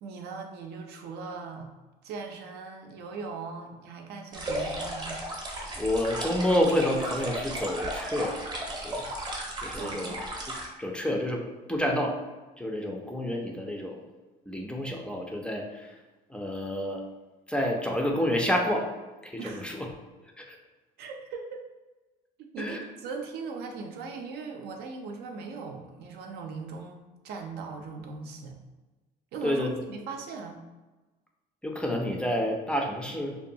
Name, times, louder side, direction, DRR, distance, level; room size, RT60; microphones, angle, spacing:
voice 1, 0.0-1.7 2.0-5.2 9.7-10.2 19.4-19.7 21.0-21.6 22.4-28.6 29.3-30.6, right 4 dB, 75° right, 3 dB, 0.5 m, -39 dB
sound 1, 4.3-10.7, right 1 dB, 25° right, 0.7 m, -35 dB
voice 2, 5.7-8.4 8.8-9.1 9.6-10.1 10.5-11.4 11.7-12.2 12.6-14.0 14.5-16.0 16.3-17.0 17.5-18.9 19.2-19.9 20.4-20.6 22.6-22.8 29.4-29.8 31.6-33.4, left 1 dB, 5° left, 1 dB, 0.4 m, -29 dB
2.8 x 2.2 x 2.6 m, 1.2 s
cardioid pair, 110°, 17 cm